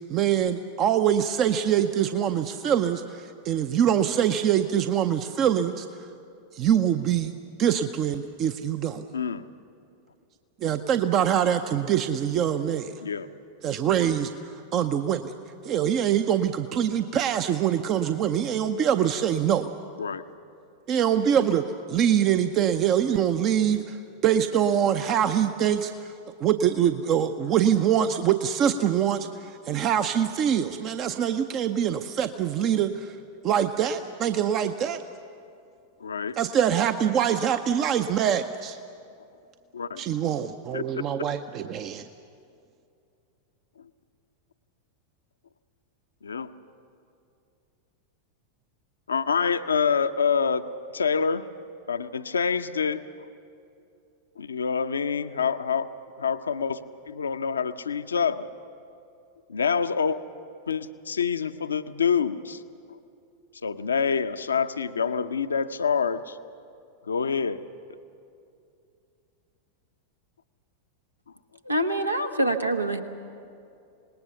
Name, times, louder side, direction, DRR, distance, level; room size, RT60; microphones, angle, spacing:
voice 1, 0.1-5.9 6.5-7.3 7.6-9.0 10.6-12.9 13.6-15.3 15.6-19.7 20.9-26.1 26.4-33.2 33.4-35.0 36.4-38.8 40.0-42.0, right 9 dB, 35° right, 9 dB, 0.6 m, -24 dB
voice 2, 9.1-9.5 13.0-13.3 20.0-20.2 36.0-36.4 39.7-40.0 40.7-41.0 46.2-46.5 49.1-50.6 50.9-51.4 51.9-53.0 54.4-55.9 56.2-56.8 57.1-58.5 59.5-60.2 60.7-62.6 62.9-63.0 63.6-66.4 67.1-67.6, left 6 dB, 70° left, 10 dB, 0.6 m, -26 dB
voice 3, 71.6-73.0, right 1 dB, 85° right, 7 dB, 1.2 m, -25 dB
26.5 x 19.5 x 6.8 m, 2.5 s
figure-of-eight pair, 90°, 0 cm